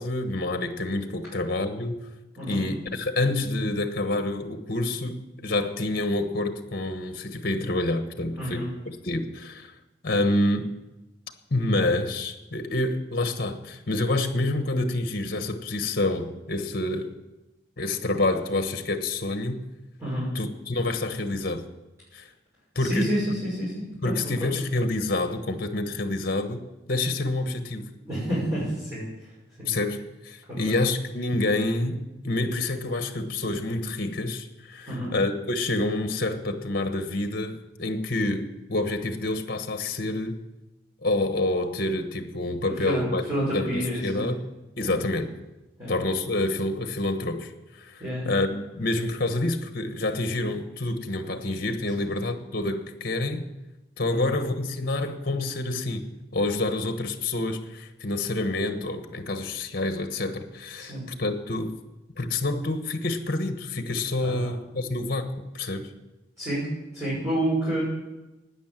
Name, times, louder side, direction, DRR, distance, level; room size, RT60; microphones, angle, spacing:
voice 1, 0.0-2.0 2.5-9.7 10.0-10.8 11.5-17.1 17.8-19.6 20.3-21.6 22.1-22.3 22.7-23.1 24.0-26.6 26.9-27.8 29.6-40.4 41.0-43.2 43.5-44.5 44.8-45.3 45.9-53.5 54.0-61.8 62.2-65.9, left 2 dB, 55° left, 8 dB, 1.2 m, -28 dB
voice 2, 2.4-2.7 8.4-8.7 20.0-20.3 22.8-24.1 24.4-24.7 28.0-29.0 29.6-29.7 34.9-35.1 42.8-43.0 43.3-44.3 44.8-45.0 45.8-45.9 48.0-48.3 51.9-52.1 54.1-54.4 60.8-61.0 64.2-64.5 66.4-66.6 66.9-67.8, right 1 dB, 15° right, -10 dB, 6.4 m, -29 dB
12.5 x 9.8 x 7.6 m, 1.0 s
head